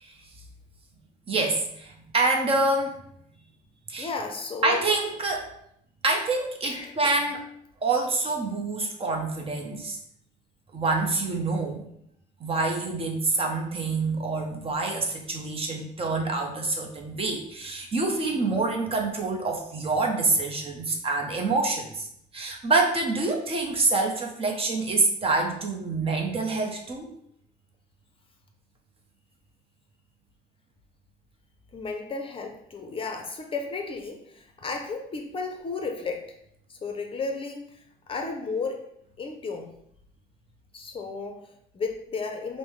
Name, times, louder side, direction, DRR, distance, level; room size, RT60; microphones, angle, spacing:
voice 1, 1.3-3.0 3.9-4.1 4.6-5.5 6.0-7.4 7.8-10.0 10.7-11.9 12.4-22.1 22.3-27.1, right 3 dB, 35° right, 2 dB, 0.7 m, -26 dB
voice 2, 4.0-4.8 6.6-7.2 31.7-36.3 36.7-38.8 39.2-39.7 40.7-42.6, left 4 dB, 30° left, 3 dB, 0.6 m, -34 dB
5.2 x 2.1 x 3.2 m, 0.71 s
cardioid pair, 110°, 17 cm